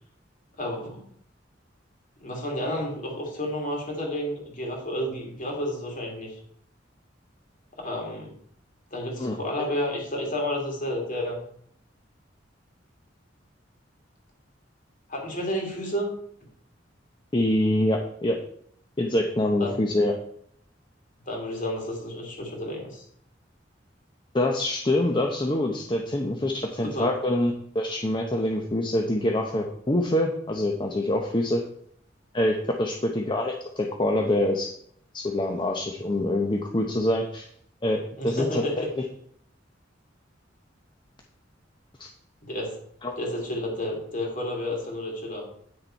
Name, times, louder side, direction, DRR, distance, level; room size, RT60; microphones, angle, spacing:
voice 1, 0.6-1.1 2.2-6.4 7.8-8.3 8.9-11.4 15.1-16.1 19.6-19.7 21.3-23.1 26.9-27.1 38.2-38.9 42.4-42.8 43.2-45.5, left 1 dB, 45° left, 0 dB, 2.7 m, -31 dB
voice 2, 9.2-9.6 17.3-18.4 19.0-20.1 24.3-31.6 32.3-34.7 35.1-37.4 37.8-39.0 42.0-42.1 43.0-43.1, left 1 dB, 25° left, 2 dB, 0.8 m, -25 dB
9.6 x 6.6 x 4.5 m, 0.66 s
head